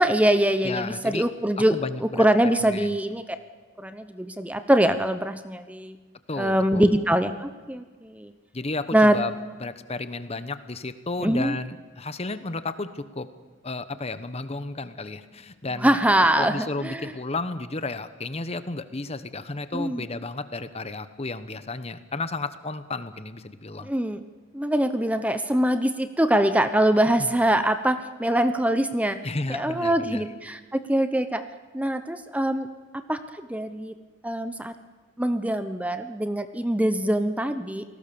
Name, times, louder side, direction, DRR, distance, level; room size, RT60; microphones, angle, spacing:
voice 1, 0.0-3.2 3.8-6.0 6.4-8.3 8.9-9.2 11.2-11.6 15.8-17.1 19.7-20.0 23.8-24.2 24.5-29.2 29.5-31.4 31.7-32.7 33.1-33.9 34.2-34.7 35.2-37.8, right 1 dB, 5° right, 10 dB, 0.9 m, -23 dB
voice 2, 0.6-1.3 1.6-2.2 2.6-2.9 6.3-6.9 8.5-9.3 9.6-13.3 13.6-16.0 16.4-23.9 27.2-27.3 29.2-30.3, left 3 dB, 30° left, 12 dB, 1.1 m, -33 dB
29.0 x 19.0 x 7.0 m, 1.4 s
head